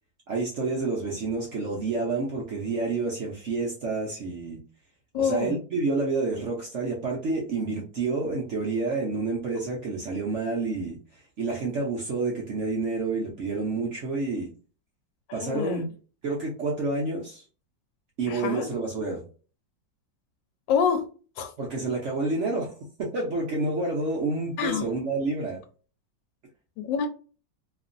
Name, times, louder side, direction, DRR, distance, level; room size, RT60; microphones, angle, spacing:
voice 1, 0.3-4.6 5.1-11.0 11.4-14.5 15.3-15.8 16.2-17.4 18.2-19.2 21.6-22.7 23.0-25.6, right 3 dB, 65° right, 0.7 m, -29 dB
voice 2, 5.1-5.5 15.3-15.9 18.3-18.7 20.7-21.1 21.4-21.5 24.6-24.9 26.8-27.1, left 7 dB, 85° left, 1.3 m, -26 dB
2.9 x 2.5 x 2.5 m
omnidirectional pair, 1.9 m